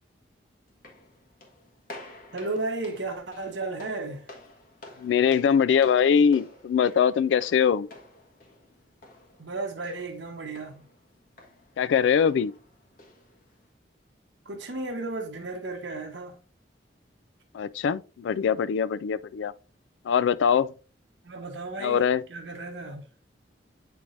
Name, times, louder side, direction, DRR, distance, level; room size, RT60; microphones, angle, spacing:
sound 1, 0.7-13.7, left 1 dB, 50° left, 1.5 m, -50 dB
voice 1, 2.3-4.2 9.4-10.8 14.4-16.3 21.2-23.0, right 3 dB, 85° right, 1.1 m, -34 dB
voice 2, 5.0-7.9 11.8-12.5 17.5-19.5 20.1-20.7 21.8-22.2, left 7 dB, 90° left, 0.3 m, -22 dB
8.4 x 4.6 x 2.5 m
head